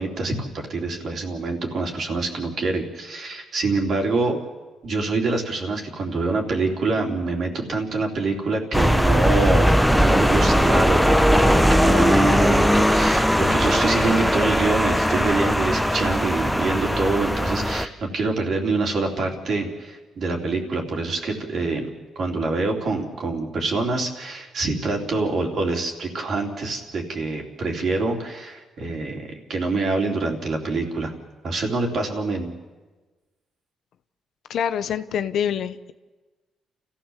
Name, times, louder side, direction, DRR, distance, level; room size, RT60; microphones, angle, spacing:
voice 1, 0.0-4.4 4.8-21.9 22.2-31.1 31.4-32.5, right 3 dB, 55° right, 1 dB, 3.6 m, -25 dB
sound 1, 8.7-17.8, equal, ahead, 0.9 m, -19 dB
voice 2, 34.5-35.9, left 8 dB, 70° left, 11 dB, 0.9 m, -26 dB
29.5 x 15.0 x 7.4 m, 1.3 s
cardioid pair, 90°, 0 cm